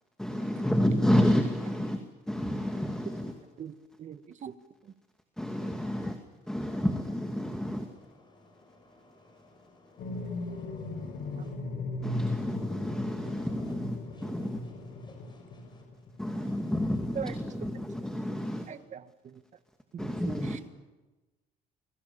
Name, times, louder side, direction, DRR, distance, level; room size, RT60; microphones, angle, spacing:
voice 1, 0.2-2.0 2.3-3.3 5.4-6.2 6.5-7.9 12.0-14.6 16.2-18.7 20.0-20.6, equal, 5° left, 2.4 m, -30 dB
voice 2, 2.8-3.4 5.8-6.1 6.4-6.9 7.4-11.7 13.0-17.5, left 2 dB, 25° left, 6.3 m, -60 dB
voice 3, 3.6-4.5 4.8-4.9 11.4-11.5 17.1-17.3 18.3-18.4 18.7-19.4 19.9-20.6, right 8 dB, 45° right, 1.7 m, -41 dB
sound 1, 10.0-16.1 16.9-17.2, left 2 dB, 60° left, 5.7 m, -37 dB
30.0 x 22.5 x 7.1 m
cardioid pair, 110°, 17 cm